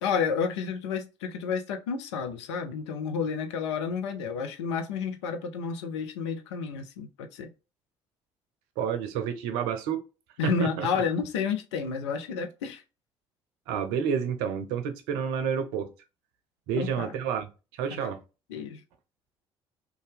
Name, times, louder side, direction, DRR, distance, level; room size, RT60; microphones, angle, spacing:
voice 1, 0.0-7.5 10.4-12.8 16.8-17.1 17.9-18.1 18.5-18.8, left 6 dB, 80° left, 0.5 m, -30 dB
voice 2, 8.8-10.0 10.4-11.0 13.7-15.9 16.7-18.2, right 7 dB, 70° right, 0.5 m, -30 dB
2.7 x 2.2 x 3.3 m
hypercardioid pair, 50°, 15 cm